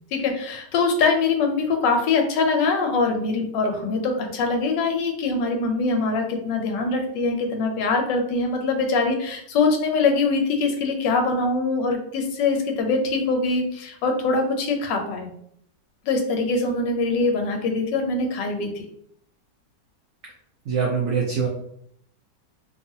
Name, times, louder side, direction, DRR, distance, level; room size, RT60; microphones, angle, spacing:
voice 1, 0.1-15.3 16.0-18.8, left 3 dB, 85° left, 3 dB, 1.3 m, -23 dB
voice 2, 20.7-21.5, right 6 dB, 80° right, -1 dB, 0.7 m, -23 dB
2.9 x 2.3 x 2.7 m, 0.69 s
omnidirectional pair, 1.9 m